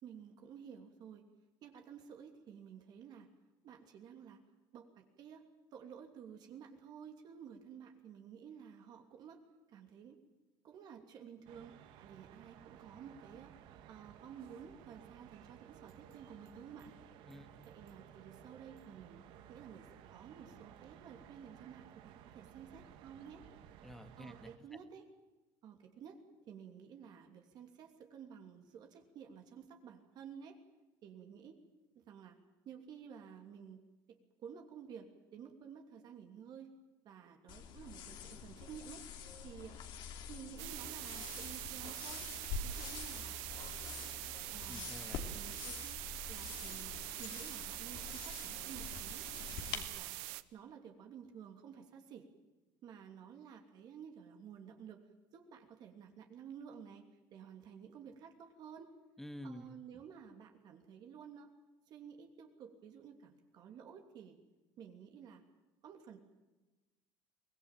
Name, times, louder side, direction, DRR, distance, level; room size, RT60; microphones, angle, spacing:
voice 1, 0.0-1.2 1.6-3.3 3.6-4.4 4.7-5.4 5.7-9.4 9.7-10.2 10.6-13.5 13.9-16.9 17.6-19.2 19.5-23.4 24.2-25.0 25.6-26.2 26.5-30.6 31.0-31.6 31.9-32.4 32.6-36.7 37.0-39.0 39.4-39.8 40.3-42.3 42.6-43.4 44.5-44.9 45.3-46.0 46.3-49.3 49.6-50.1 50.5-52.3 52.8-55.0 55.3-57.0 57.3-58.9 59.4-61.5 61.9-64.4 64.8-65.4 65.8-66.2, right 7 dB, 55° right, 3 dB, 2.9 m, -53 dB
sound 1, 11.5-24.6, right 10 dB, 70° right, 1.9 m, -57 dB
voice 2, 17.3-17.7 23.8-24.7 44.7-45.3 59.2-60.0, equal, 5° left, 9 dB, 1.8 m, -50 dB
sound 2, 37.5-49.8, left 6 dB, 65° left, 2.8 m, -46 dB
sound 3, 40.6-50.4, right 20 dB, 90° right, 0.9 m, -44 dB
23.5 x 18.5 x 9.1 m, 1.1 s
cardioid pair, 125°, 9 cm